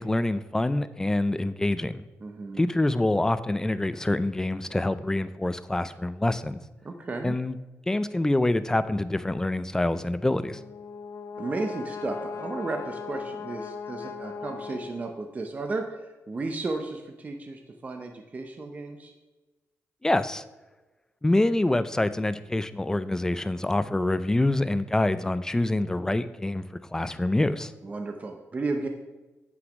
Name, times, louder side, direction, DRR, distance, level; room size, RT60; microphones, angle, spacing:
voice 1, 0.0-2.0 2.6-6.6 7.2-7.6 7.9-10.6 20.0-20.4 21.2-26.6 26.9-27.7, left 2 dB, 10° left, 13 dB, 0.3 m, -26 dB
voice 2, 2.2-2.6 6.8-7.3 11.4-16.0 16.3-19.1 27.8-28.9, right 3 dB, 30° right, 3 dB, 0.7 m, -33 dB
Brass instrument, 10.3-15.4, left 5 dB, 65° left, 0.7 m, -38 dB
8.0 x 5.9 x 5.1 m, 1.2 s
wide cardioid pair, 135°, 5 cm